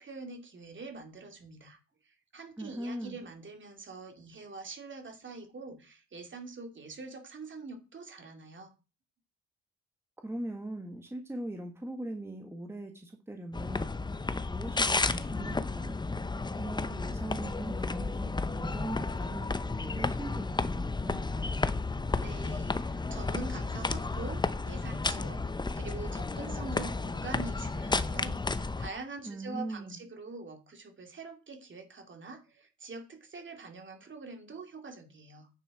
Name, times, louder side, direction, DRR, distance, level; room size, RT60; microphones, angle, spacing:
voice 1, 0.0-1.8 2.0-8.7 22.2-35.5, right 3 dB, 40° right, 5 dB, 2.4 m, -44 dB
voice 2, 2.6-3.2 10.2-15.9 16.6-21.4 29.2-30.0, right 1 dB, 10° right, 4 dB, 1.5 m, -40 dB
sound 1, 13.5-28.9, left 3 dB, 15° left, 0.7 m, -32 dB
9.6 x 6.9 x 4.8 m, 0.32 s
cardioid pair, 90°, 30 cm